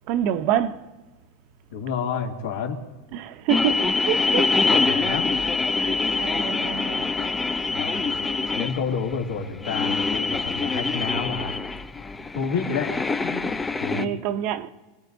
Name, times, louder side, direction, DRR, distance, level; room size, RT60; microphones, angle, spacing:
voice 1, 0.1-0.8 3.1-4.6 4.8-5.2 5.7-7.2 7.9-8.1 13.9-14.7, right 9 dB, 50° right, 0.8 m, -27 dB
voice 2, 1.7-2.8 4.5-5.3 7.7-8.2 8.5-11.6 12.3-13.5 13.8-14.2, left 6 dB, 80° left, 2.7 m, -30 dB
sound 1, 3.5-14.1, left 3 dB, 10° left, 0.5 m, -25 dB
27.5 x 18.5 x 2.7 m
supercardioid pair, 145°, 0 cm